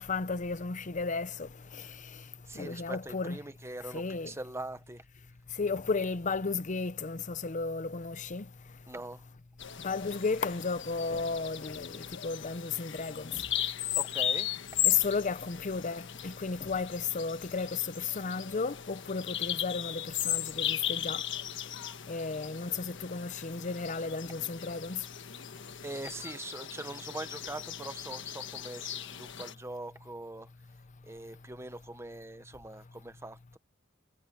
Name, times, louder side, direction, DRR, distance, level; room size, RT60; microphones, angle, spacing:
voice 1, 0.0-1.9 2.5-3.4 3.9-4.3 5.6-8.5 9.8-13.4 14.8-21.2 22.1-25.0, left 4 dB, 40° left, 0.7 m, -33 dB
voice 2, 2.5-5.0 8.9-9.2 13.9-14.5 25.8-30.5 31.0-33.6, right 2 dB, 15° right, 1.1 m, -42 dB
Bird vocalization bird call bird song, 9.6-29.5, left 11 dB, 65° left, 1.3 m, -37 dB
head